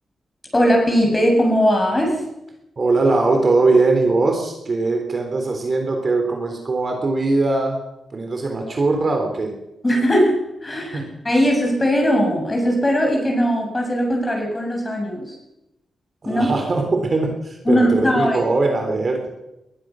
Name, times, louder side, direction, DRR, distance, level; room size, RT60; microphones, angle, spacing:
voice 1, 0.5-2.2 9.8-15.3 16.2-16.6 17.7-18.4, equal, 15° left, 1 dB, 7.3 m, -19 dB
voice 2, 2.8-7.8 8.1-9.5 10.9-11.1 16.2-19.3, right 3 dB, 35° right, 4 dB, 3.4 m, -20 dB
21.5 x 20.5 x 6.3 m, 0.91 s
wide cardioid pair, 140°, 0 cm